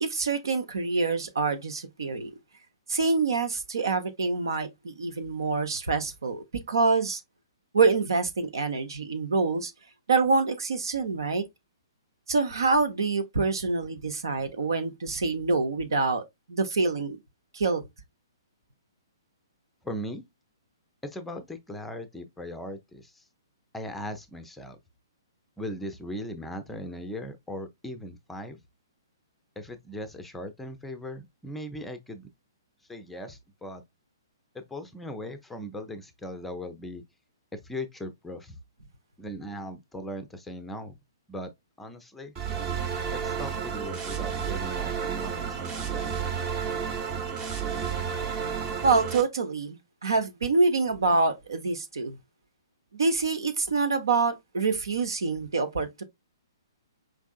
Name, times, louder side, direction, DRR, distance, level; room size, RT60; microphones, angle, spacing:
voice 1, 0.0-2.3 2.9-7.2 7.7-9.7 10.1-11.4 12.3-16.2 16.5-17.2 17.5-17.8 48.8-52.2 52.9-56.0, right 4 dB, 65° right, 0.9 m, -26 dB
voice 2, 19.8-20.3 21.0-23.2 23.7-24.8 25.6-28.6 29.6-32.3 32.9-33.8 34.5-37.0 37.5-38.6 39.2-41.0 41.3-41.5 41.8-42.3 43.1-46.2, left 1 dB, 5° left, 0.6 m, -38 dB
sound 1, 42.4-49.2, right 7 dB, 25° right, 0.9 m, -31 dB
4.9 x 3.5 x 2.3 m
figure-of-eight pair, 120°, 2 cm